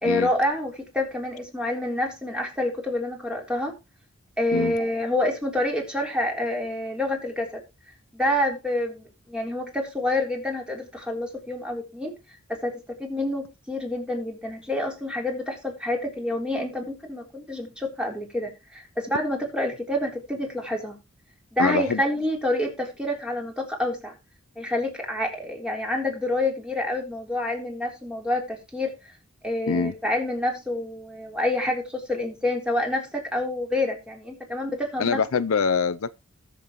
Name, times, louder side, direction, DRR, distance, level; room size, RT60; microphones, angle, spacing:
voice 1, 0.0-3.7 4.4-7.6 8.1-12.1 12.5-21.0 21.5-24.1 24.6-28.9 29.4-35.2, left 1 dB, 5° right, 3.8 m, -28 dB
voice 2, 21.6-22.0 29.7-29.9 35.0-36.1, left 5 dB, 75° left, 0.5 m, -24 dB
20.5 x 7.1 x 3.0 m
head